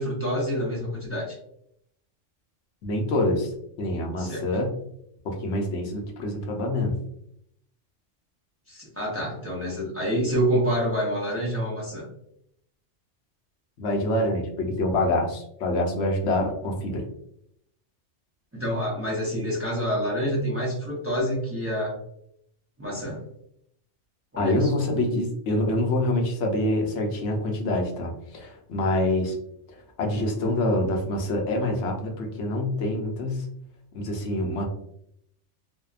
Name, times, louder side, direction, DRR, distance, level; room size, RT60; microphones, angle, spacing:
voice 1, 0.0-1.4 4.2-4.4 8.7-12.1 18.5-22.0 22.8-23.2 24.3-24.7 28.9-29.0, equal, 20° right, -5 dB, 0.3 m, -27 dB
voice 2, 2.8-4.7 5.2-6.9 13.8-17.0 24.4-29.3 30.0-33.5 33.9-34.6, left 1 dB, 70° left, 2 dB, 0.9 m, -26 dB
2.7 x 2.1 x 2.3 m, 0.72 s
omnidirectional pair, 1.3 m